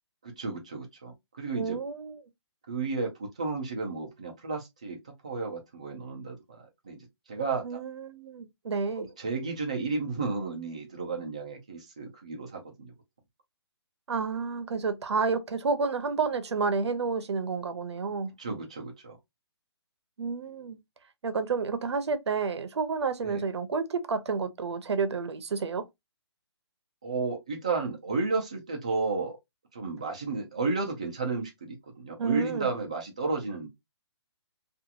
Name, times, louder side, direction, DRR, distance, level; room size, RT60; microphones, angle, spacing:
voice 1, 0.2-1.8 2.7-7.8 9.0-12.9 18.4-19.2 23.2-23.4 27.0-29.4 29.7-33.7, right 3 dB, 15° right, 0.3 m, -33 dB
voice 2, 1.5-2.2 7.6-9.1 14.1-18.3 20.2-20.8 21.2-25.9 32.2-32.7, right 5 dB, 70° right, 0.6 m, -30 dB
2.8 x 2.4 x 2.4 m
hypercardioid pair, 180°, 15 cm